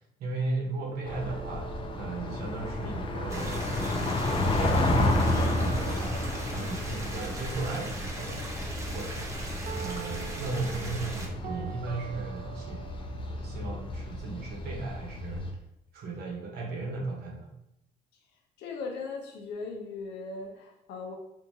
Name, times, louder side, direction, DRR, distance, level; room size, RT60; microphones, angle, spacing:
voice 1, 0.2-1.7 1.9-6.2 6.5-8.5 8.9-12.9 13.3-15.6 15.9-17.5, right 3 dB, 70° right, 0 dB, 1.0 m, -36 dB
sound 1, 0.9-6.9 7.1-14.9, right 10 dB, 55° right, 0.4 m, -47 dB
sound 2, 1.0-15.5, left 1 dB, 30° left, 0.5 m, -32 dB
sound 3, 3.3-11.3, right 1 dB, 15° right, 0.6 m, -38 dB
voice 2, 18.6-21.1, left 4 dB, 80° left, 1 dB, 0.7 m, -38 dB
3.4 x 2.7 x 2.7 m, 0.83 s
cardioid pair, 110°, 17 cm